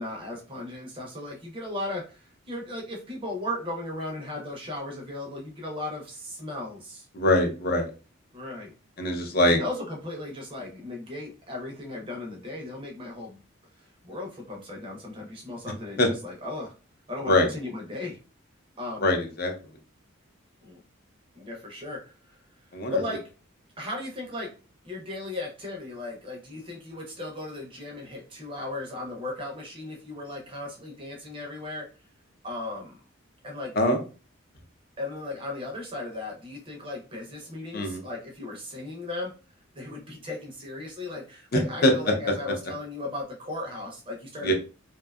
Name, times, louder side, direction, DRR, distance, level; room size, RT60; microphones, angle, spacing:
voice 1, 0.0-7.1 8.3-8.7 9.5-13.4 14.0-16.7 17.1-18.2 18.8-19.1 20.6-20.8 21.3-22.4 22.9-23.3 23.8-24.5 24.8-31.9 32.4-33.0 33.4-33.8 35.0-39.3 39.8-44.5, left 2 dB, 25° right, 0 dB, 0.5 m, -36 dB
voice 2, 7.1-7.8 9.0-9.6 16.0-16.1 17.2-17.5 19.0-19.5 22.7-22.9 33.8-34.0 37.7-38.0 41.5-42.1 44.4-44.5, left 1 dB, 45° left, 4 dB, 0.5 m, -22 dB
2.6 x 2.2 x 2.2 m, 0.34 s
head